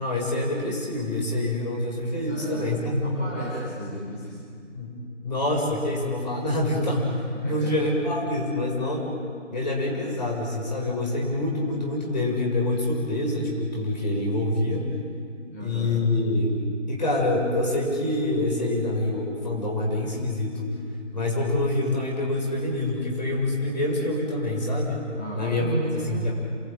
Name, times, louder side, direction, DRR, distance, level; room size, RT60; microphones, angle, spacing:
voice 1, 0.0-3.1 4.7-4.9 5.2-9.1 9.5-14.9 15.6-16.6 16.9-20.7 21.1-25.1 25.4-25.7 26.0-26.3, left 1 dB, 35° left, -1 dB, 7.2 m, -26 dB
voice 2, 2.3-2.7 2.9-4.4 7.3-7.8 15.5-15.9 25.2-26.3, right 1 dB, 15° left, -8 dB, 4.7 m, -33 dB
28.5 x 22.5 x 9.1 m, 2.3 s
figure-of-eight pair, 165°, 38 cm